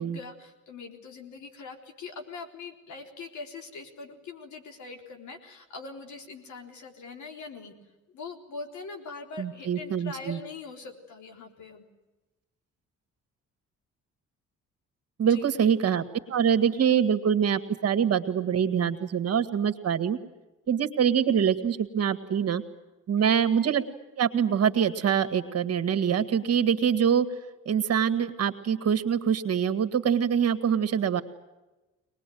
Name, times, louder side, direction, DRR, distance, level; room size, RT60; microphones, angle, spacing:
voice 1, 0.0-7.8 8.1-11.8 15.2-15.5 23.2-23.4, left 4 dB, 70° left, 4 dB, 3.8 m, -42 dB
voice 2, 9.4-10.4 15.2-16.0 16.3-20.2 20.7-22.6 23.1-23.8 24.2-27.3 27.7-31.2, right 8 dB, 55° right, 10 dB, 1.9 m, -24 dB
23.0 x 20.5 x 9.3 m, 1.1 s
cardioid pair, 90°, 30 cm